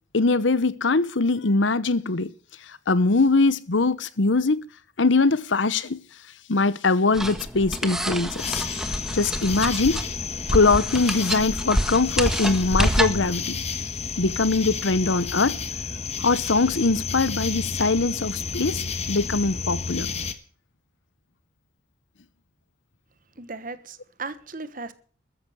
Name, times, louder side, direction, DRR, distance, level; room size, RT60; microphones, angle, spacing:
voice 1, 0.1-2.3 2.7-4.7 5.0-6.0 6.5-8.7 9.1-10.0 10.5-13.6 14.2-15.6 16.2-20.1, left 3 dB, 80° left, 0.9 m, -22 dB
sound 1, 7.1-13.3, equal, 5° right, 1.3 m, -27 dB
sound 2, 8.4-20.3, left 5 dB, 35° left, 1.3 m, -31 dB
voice 2, 23.4-24.9, right 3 dB, 45° right, 1.3 m, -36 dB
13.5 x 10.0 x 7.9 m
head